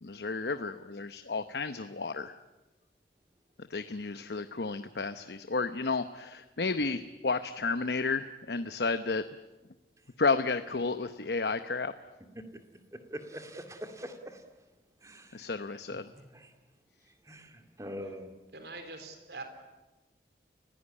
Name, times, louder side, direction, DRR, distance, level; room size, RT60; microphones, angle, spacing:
voice 1, 0.0-2.3 3.6-9.3 10.2-11.9 15.3-16.1, left 4 dB, 70° left, 11 dB, 0.8 m, -32 dB
voice 2, 12.9-14.4 15.0-15.5 16.2-16.5 17.2-18.3, equal, 20° right, 6 dB, 2.2 m, -43 dB
voice 3, 18.5-19.4, right 3 dB, 75° right, 7 dB, 3.8 m, -43 dB
30.0 x 17.0 x 9.8 m, 1.1 s
head